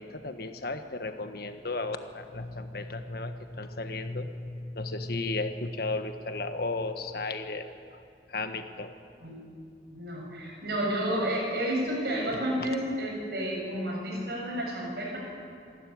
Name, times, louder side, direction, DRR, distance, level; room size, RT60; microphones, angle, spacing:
voice 1, 0.0-7.7 8.3-8.9 12.6-12.7, left 3 dB, 60° left, 7 dB, 1.4 m, -34 dB
voice 2, 9.9-15.2, right 1 dB, 60° right, -2 dB, 7.2 m, -31 dB
26.5 x 12.5 x 9.5 m, 2.4 s
head